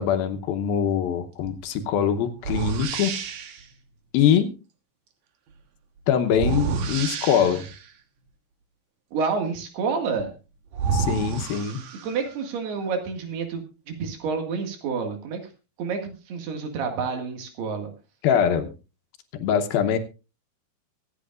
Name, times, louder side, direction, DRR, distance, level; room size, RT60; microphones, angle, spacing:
voice 1, 0.0-3.2 4.1-4.5 6.1-7.6 10.9-11.8 18.2-18.7 19.4-20.0, left 8 dB, 75° left, 7 dB, 2.7 m, -23 dB
sound 1, 1.5-1.6 2.4-3.7 6.3-7.9 10.2-10.3 10.7-12.3, right 5 dB, 60° right, 2.0 m, -29 dB
voice 2, 9.1-10.3 12.0-15.4 15.8-17.9, right 5 dB, 85° right, 4 dB, 4.0 m, -29 dB
24.5 x 8.3 x 2.5 m, 0.31 s
omnidirectional pair, 4.5 m